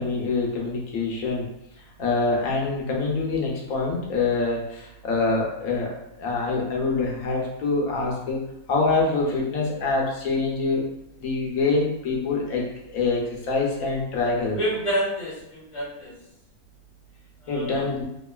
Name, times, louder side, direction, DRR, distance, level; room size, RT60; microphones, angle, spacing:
voice 1, 0.0-1.5 2.0-8.4 8.7-10.9 11.2-14.6 17.5-18.0, left 3 dB, 70° left, -2 dB, 1.0 m, -25 dB
voice 2, 14.5-16.1 17.4-17.9, right 1 dB, 30° left, -7 dB, 0.6 m, -28 dB
3.0 x 2.4 x 2.2 m, 0.86 s
omnidirectional pair, 1.7 m